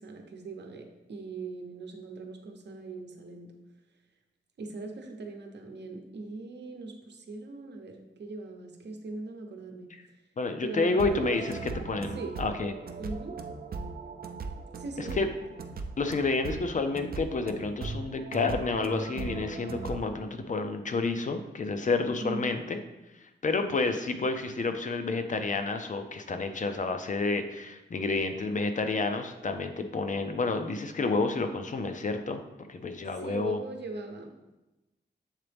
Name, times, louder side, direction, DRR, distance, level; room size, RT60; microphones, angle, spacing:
voice 1, 0.0-3.5 4.6-9.9 10.6-11.4 12.1-12.4 13.0-13.4 14.7-15.3 22.2-22.6 33.2-34.6, right 3 dB, 70° right, 3 dB, 0.8 m, -40 dB
voice 2, 10.4-11.5 11.8-12.7 15.0-15.3 16.0-22.8 23.4-32.4 32.7-33.6, left 3 dB, 45° left, 7 dB, 0.5 m, -30 dB
sound 1, 10.9-20.0, right 4 dB, 55° right, 0.5 m, -38 dB
7.3 x 3.9 x 3.4 m, 1.0 s
wide cardioid pair, 110°, 18 cm